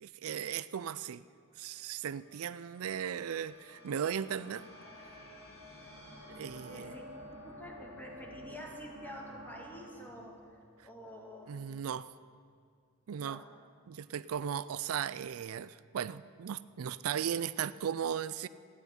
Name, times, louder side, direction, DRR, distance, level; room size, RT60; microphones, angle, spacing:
voice 1, 0.0-1.2 1.6-4.6 6.4-6.9 11.5-12.1 13.1-13.4 13.9-18.5, right 8 dB, 85° right, 17 dB, 0.4 m, -37 dB
sound 1, 1.4-11.8, equal, 75° left, 5.1 m, -52 dB
voice 2, 6.6-7.1 7.4-11.9 13.2-13.5, equal, 10° left, 1 dB, 2.1 m, -48 dB
14.5 x 9.5 x 9.5 m, 2.1 s
head